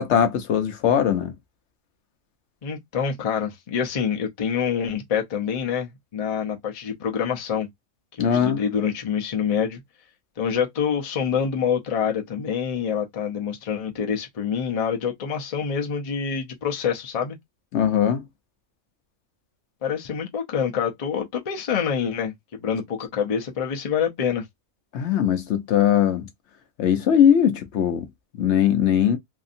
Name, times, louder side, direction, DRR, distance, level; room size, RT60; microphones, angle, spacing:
voice 1, 0.0-1.3 8.2-8.6 17.7-18.2 24.9-26.3 26.8-28.1 28.4-29.2, left 9 dB, 65° left, 0.8 m, -20 dB
voice 2, 2.6-7.7 8.2-9.8 10.4-17.4 19.8-22.3 22.6-24.4, left 7 dB, 40° left, 0.5 m, -26 dB
2.7 x 2.6 x 2.5 m
omnidirectional pair, 1.4 m